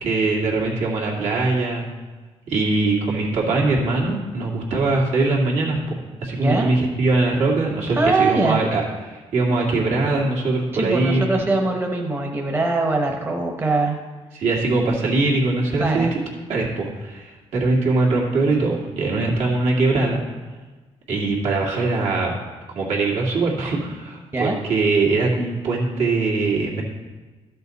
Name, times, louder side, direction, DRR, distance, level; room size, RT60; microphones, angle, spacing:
voice 1, 0.0-1.9 2.5-11.4 14.3-16.2 16.5-20.2 21.1-22.3 22.7-26.8, right 3 dB, 75° right, -3 dB, 2.2 m, -22 dB
voice 2, 6.4-6.7 7.9-8.6 10.7-14.0 15.8-16.1 24.3-24.6, right 3 dB, 20° right, 1 dB, 0.9 m, -22 dB
12.5 x 6.8 x 4.1 m, 1.3 s
cardioid pair, 135°, 11 cm